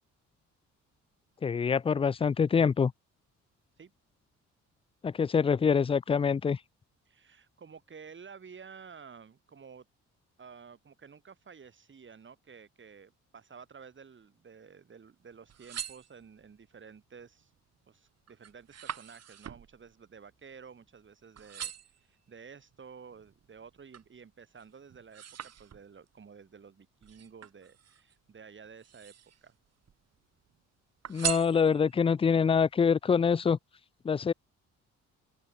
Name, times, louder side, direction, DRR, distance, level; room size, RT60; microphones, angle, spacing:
voice 1, 1.4-2.9 5.0-6.6 31.1-33.6 34.0-34.3, left 6 dB, 20° left, 0.4 m, -25 dB
voice 2, 7.0-9.9 10.4-17.5 17.9-29.1 29.4-29.6, right 6 dB, 40° right, 5.0 m, -52 dB
sound 1, 15.3-16.6 17.2-17.6 18.0-21.1 21.4-22.1 22.7-24.2 24.6-26.1 27.0-28.2 28.7-29.5 29.8-30.6 31.0-32.1 32.6-32.7, right 9 dB, 55° right, 3.2 m, -41 dB
open air
cardioid pair, 90°, 30 cm